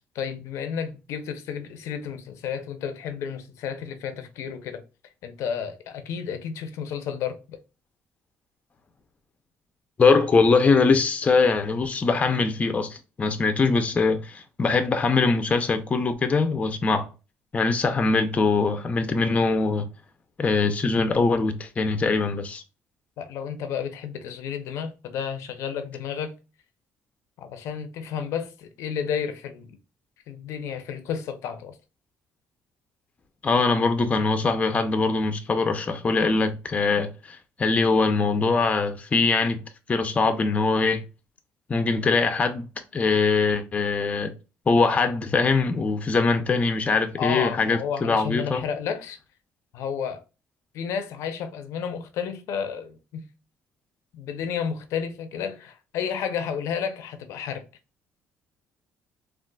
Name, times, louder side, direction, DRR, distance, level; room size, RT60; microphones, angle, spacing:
voice 1, 0.1-4.8 5.2-7.6 23.2-26.3 27.4-29.8 30.3-31.8 47.2-49.2 49.7-50.2 50.7-53.3 54.1-57.7, left 7 dB, 75° left, 0.5 m, -31 dB
voice 2, 10.0-17.1 17.5-19.8 20.4-22.6 33.4-39.6 39.9-41.0 41.7-42.6 42.9-44.3 44.7-48.6, left 4 dB, 25° left, 0.5 m, -22 dB
3.8 x 2.4 x 2.2 m
cardioid pair, 110°, 5 cm